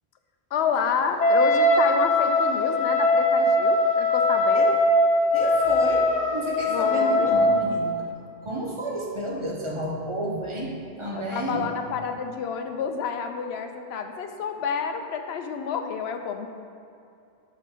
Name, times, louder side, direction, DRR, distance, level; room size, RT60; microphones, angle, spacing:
voice 1, 0.5-4.8 6.7-7.4 11.1-16.5, left 6 dB, 85° left, 6 dB, 0.9 m, -29 dB
Wind instrument woodwind instrument, 1.2-7.8, left 1 dB, 50° left, 0.6 m, -21 dB
voice 2, 5.3-8.1 8.4-11.7, right 1 dB, 30° right, -2 dB, 0.8 m, -31 dB
5.7 x 4.9 x 5.7 m, 2.6 s
omnidirectional pair, 1.0 m